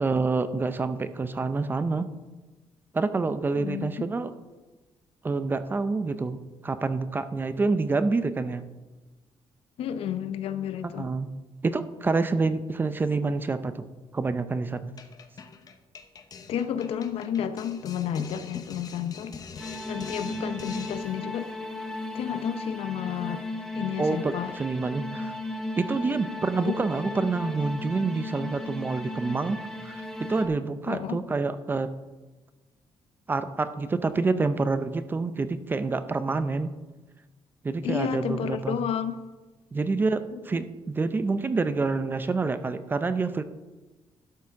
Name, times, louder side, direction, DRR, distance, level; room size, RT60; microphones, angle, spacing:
voice 1, 0.0-2.1 2.9-4.3 5.2-8.6 11.0-11.3 11.6-13.8 14.1-14.9 24.0-25.4 25.8-30.0 30.3-31.9 33.3-36.7 37.6-38.8 39.7-43.4, right 3 dB, 20° right, 11 dB, 0.5 m, -27 dB
voice 2, 3.6-3.9 9.8-11.1 16.5-19.3 19.9-21.5 22.1-23.5 23.7-24.5 26.6-26.7 30.9-31.2 37.8-39.1 40.3-40.6, left 9 dB, 70° left, 11 dB, 0.7 m, -31 dB
sound 1, 15.0-21.3, left 5 dB, 40° left, 0.8 m, -44 dB
sound 2, 19.6-30.5, left 1 dB, 5° left, 1.3 m, -36 dB
12.0 x 6.0 x 5.8 m, 1.2 s
cardioid pair, 165°, 10 cm